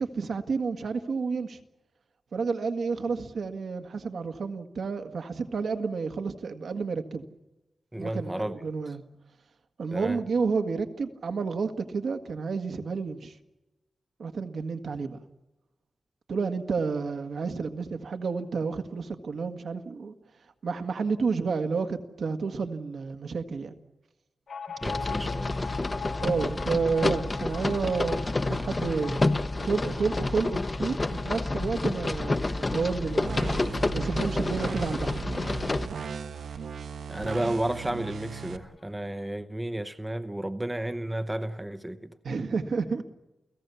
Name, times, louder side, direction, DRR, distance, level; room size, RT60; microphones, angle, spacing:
voice 1, 0.0-1.6 2.3-7.3 8.0-9.0 9.8-13.3 14.2-15.2 16.3-20.1 20.6-23.7 26.2-29.2 29.5-33.5 33.9-35.2 42.2-43.0, right 4 dB, 60° right, 1.6 m, -30 dB
voice 2, 7.9-8.5 9.9-10.2 24.8-25.7 37.1-42.1, right 1 dB, 10° right, 0.7 m, -32 dB
sound 1, 24.5-37.6 37.9-38.0 38.3-39.0, left 5 dB, 70° left, 1.6 m, -43 dB
sound 2, 24.8-35.9, left 2 dB, 25° left, 0.8 m, -29 dB
sound 3, 33.2-38.6, right 5 dB, 75° right, 1.3 m, -37 dB
29.5 x 17.5 x 7.0 m
wide cardioid pair, 175°, 0 cm